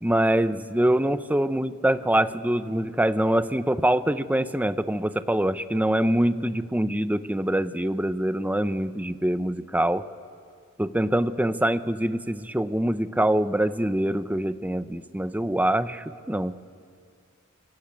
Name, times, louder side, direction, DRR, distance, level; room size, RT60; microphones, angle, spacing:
voice 1, 0.0-10.0 10.8-16.5, right 1 dB, 10° right, 12 dB, 0.7 m, -24 dB
27.5 x 23.5 x 8.6 m, 2.2 s
head